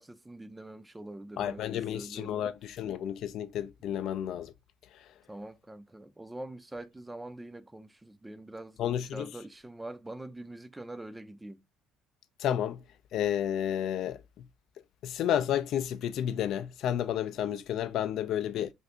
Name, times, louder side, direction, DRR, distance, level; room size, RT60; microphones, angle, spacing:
voice 1, 0.0-2.5 3.8-4.0 5.3-11.6 18.1-18.2, right 1 dB, 10° right, 0.4 m, -44 dB
voice 2, 1.4-4.5 8.8-9.3 12.4-12.8 13.1-14.5 15.0-18.7, left 10 dB, 65° left, 0.3 m, -31 dB
2.7 x 2.5 x 3.3 m
supercardioid pair, 75°, 0 cm